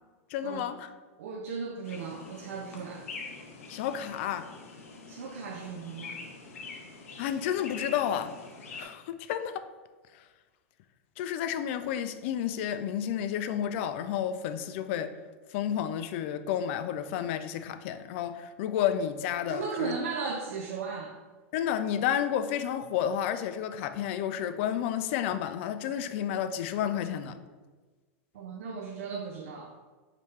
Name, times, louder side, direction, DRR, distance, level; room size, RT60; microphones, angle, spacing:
voice 1, 0.3-0.9 3.7-4.5 7.2-8.3 8.7-9.7 11.2-15.1 15.5-19.9 21.5-27.4, left 9 dB, 60° left, 11 dB, 0.4 m, -31 dB
voice 2, 1.2-3.3 5.1-6.2 19.5-21.2 28.3-29.7, right 5 dB, 75° right, 0 dB, 0.5 m, -36 dB
sound 1, 1.8-8.8, left 4 dB, 90° left, 0.7 m, -45 dB
5.1 x 2.8 x 3.2 m, 1.3 s
hypercardioid pair, 120°, 7 cm